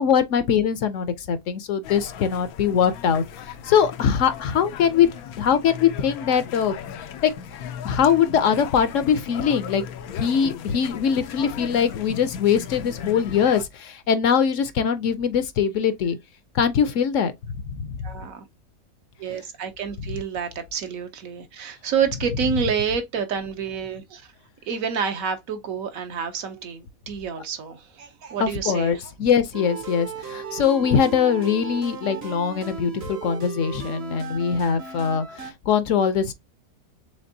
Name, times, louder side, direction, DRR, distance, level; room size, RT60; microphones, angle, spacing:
voice 1, 0.0-5.1 5.4-7.3 7.8-9.8 10.2-16.2 16.5-17.3 17.7-18.0 28.4-36.3, left 7 dB, 65° left, 0.9 m, -22 dB
sound 1, 1.8-13.7, left 8 dB, 85° left, 1.1 m, -37 dB
voice 2, 18.0-18.5 19.2-24.3 24.7-29.0, right 7 dB, 70° right, 1.2 m, -28 dB
sound 2, 29.5-35.5, right 7 dB, 55° right, 0.9 m, -36 dB
5.1 x 3.5 x 2.6 m
omnidirectional pair, 1.5 m